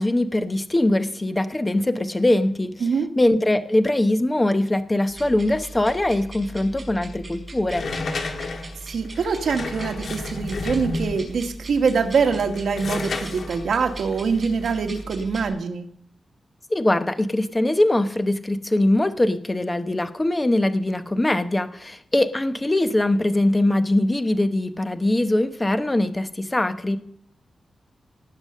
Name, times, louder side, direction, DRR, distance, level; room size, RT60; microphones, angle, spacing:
voice 1, 0.0-2.7 3.2-7.8 16.7-27.0, left 1 dB, 15° left, 9 dB, 0.8 m, -22 dB
voice 2, 2.8-3.2 8.8-15.9, right 5 dB, 75° right, 5 dB, 1.5 m, -24 dB
sound 1, 5.1-15.5, right 2 dB, 25° right, 5.4 m, -39 dB
sound 2, 7.7-11.4 12.1-15.0, left 3 dB, 55° left, 1.7 m, -32 dB
18.0 x 7.0 x 6.5 m, 0.68 s
wide cardioid pair, 165°, 0 cm